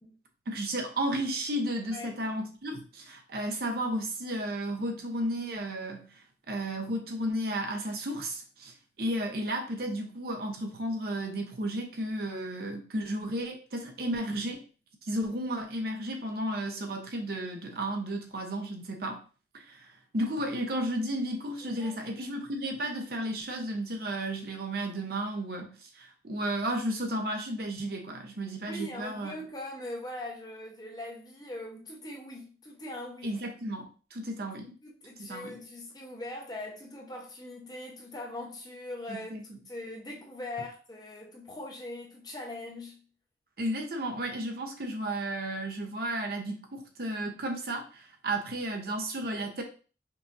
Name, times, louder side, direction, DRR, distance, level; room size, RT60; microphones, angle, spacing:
voice 1, 0.5-6.2 6.5-14.6 15.0-19.2 19.5-29.3 33.2-34.7 35.2-35.6 39.1-39.6 43.6-49.6, right 1 dB, 55° right, 0.7 m, -33 dB
voice 2, 21.6-21.9 28.7-33.4 34.6-39.3 39.7-43.0, left 1 dB, 20° left, 0.8 m, -41 dB
5.4 x 2.5 x 2.6 m
head